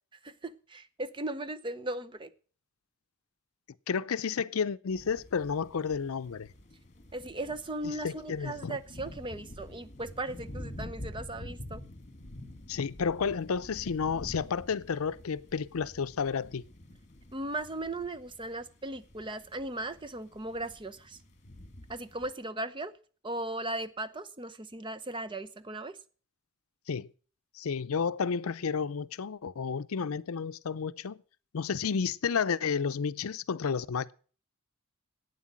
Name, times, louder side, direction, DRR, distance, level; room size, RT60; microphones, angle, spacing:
voice 1, 0.2-2.3 7.1-11.8 17.3-21.2 21.9-22.9 23.2-26.0, right 2 dB, 25° right, 0.7 m, -37 dB
voice 2, 3.9-6.5 7.8-8.8 12.7-16.6 26.9-27.1 27.5-31.2 31.5-34.1, left 6 dB, 80° left, 0.5 m, -31 dB
sound 1, 4.9-22.3, left 1 dB, 35° left, 1.8 m, -48 dB
11.5 x 9.0 x 7.3 m
head